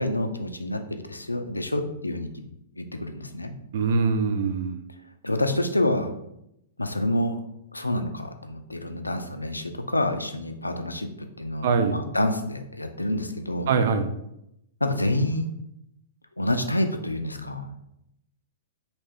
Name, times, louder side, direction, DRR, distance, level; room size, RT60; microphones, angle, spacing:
voice 1, 0.0-2.3 2.8-3.5 5.2-6.1 6.8-7.4 7.7-11.1 11.4-13.7 14.8-15.5 16.4-17.8, left 1 dB, 85° left, 7 dB, 0.4 m, -27 dB
voice 2, 3.7-4.8 11.6-12.0 13.7-14.1, right 5 dB, 55° right, 8 dB, 0.4 m, -23 dB
3.1 x 2.8 x 3.4 m, 0.81 s
figure-of-eight pair, 110°, 0 cm